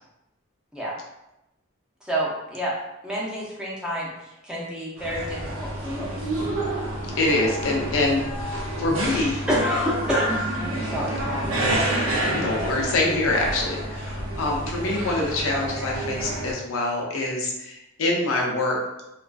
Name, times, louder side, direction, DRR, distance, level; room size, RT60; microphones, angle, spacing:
voice 1, 2.1-2.7 3.0-4.1 4.4-6.5 9.5-11.7, equal, 5° right, -5 dB, 0.4 m, -28 dB
sound 1, 5.0-16.5, right 1 dB, 85° right, 0.6 m, -29 dB
voice 2, 7.2-9.5 11.7-11.8 12.3-18.8, left 2 dB, 80° left, -1 dB, 0.6 m, -25 dB
2.3 x 2.3 x 2.3 m, 0.91 s
head